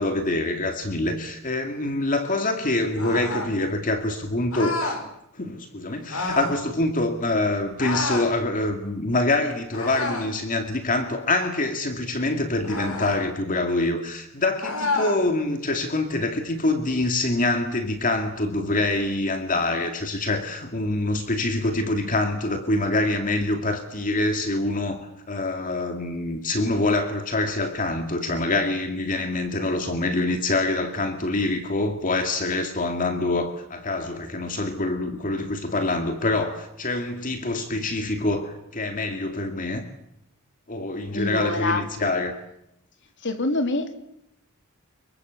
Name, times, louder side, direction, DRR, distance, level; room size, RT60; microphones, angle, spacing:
voice 1, 0.0-5.0 5.3-39.9 40.7-42.4, left 2 dB, 40° left, 6 dB, 2.3 m, -25 dB
sound 1, 3.0-3.5 4.5-5.0 6.1-6.6 7.8-8.3 9.7-10.4 12.6-13.2 14.6-15.2, left 3 dB, 85° left, 5.7 m, -29 dB
voice 2, 41.1-41.8 43.2-43.9, left 2 dB, 60° left, 7 dB, 3.3 m, -25 dB
26.5 x 23.5 x 8.2 m, 0.77 s
head